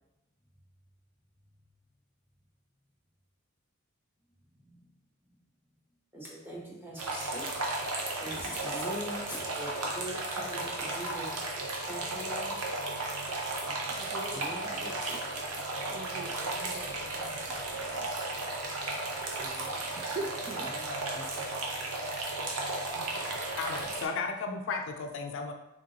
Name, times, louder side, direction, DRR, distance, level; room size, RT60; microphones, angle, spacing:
voice 1, 4.6-4.9 6.1-7.5 8.2-11.4 11.8-12.6 14.3-15.6 19.7-19.8 20.7-21.5, right 1 dB, 10° right, -5 dB, 1.0 m, -43 dB
sound 1, 7.0-24.0, right 2 dB, 90° right, 0.7 m, -34 dB
voice 2, 14.0-14.9 15.9-18.1 19.4-20.8, right 2 dB, 30° right, 1 dB, 0.3 m, -43 dB
voice 3, 22.9-25.5, left 4 dB, 60° left, 4 dB, 0.4 m, -35 dB
3.7 x 3.7 x 2.8 m, 0.94 s
head